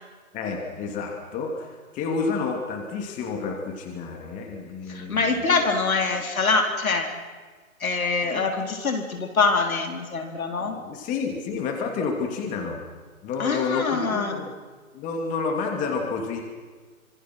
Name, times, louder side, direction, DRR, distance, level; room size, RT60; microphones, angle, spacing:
voice 1, 0.3-5.6 8.3-8.5 10.6-12.8 13.2-14.5 14.9-16.4, left 4 dB, 20° left, 2 dB, 2.9 m, -30 dB
voice 2, 4.9-7.1 7.8-10.8 13.4-14.4, left 4 dB, 70° left, 5 dB, 4.1 m, -24 dB
26.5 x 26.0 x 6.3 m, 1.5 s
hypercardioid pair, 145°, 43 cm